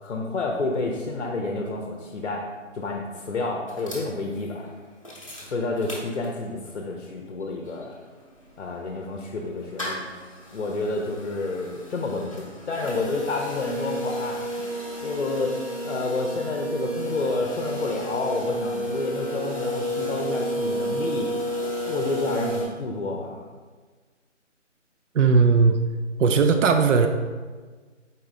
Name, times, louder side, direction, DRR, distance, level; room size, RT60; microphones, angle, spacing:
voice 1, 0.0-2.5 2.7-4.7 5.5-7.9 8.6-10.0 10.5-14.6 15.0-15.6 15.8-21.5 21.9-23.4, left 3 dB, 65° left, 1 dB, 0.6 m, -29 dB
sound 1, 3.7-6.7 7.1-7.2 7.3-22.6, equal, 25° left, 0.7 m, -32 dB
voice 2, 25.1-25.8 26.2-27.1, right 5 dB, 75° right, 7 dB, 0.5 m, -18 dB
4.4 x 3.1 x 3.6 m, 1.4 s
hypercardioid pair, 175°, 37 cm